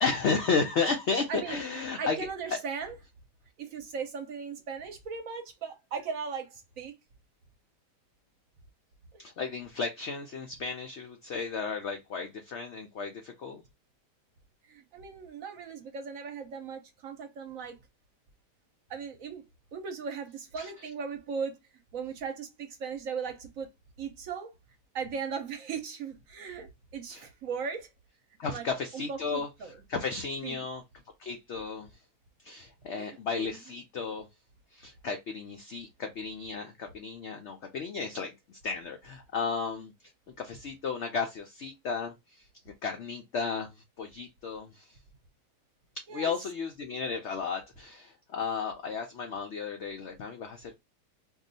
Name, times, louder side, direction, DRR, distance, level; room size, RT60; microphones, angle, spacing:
voice 1, 0.0-2.2 9.2-13.6 20.6-20.7 27.1-27.2 28.4-30.8 31.2-31.9 32.4-34.3 34.7-39.9 40.4-44.9 45.9-50.8, left 5 dB, 80° left, 0.6 m, -34 dB
voice 2, 1.3-3.0 3.6-6.9 14.7-17.8 18.9-19.4 19.7-21.6 21.9-23.7 24.0-24.5 24.9-27.9 28.4-28.7 28.9-29.8 30.4-30.7 32.9-33.6 46.1-46.3, right 6 dB, 60° right, 1.0 m, -38 dB
2.6 x 2.3 x 3.8 m
omnidirectional pair, 1.8 m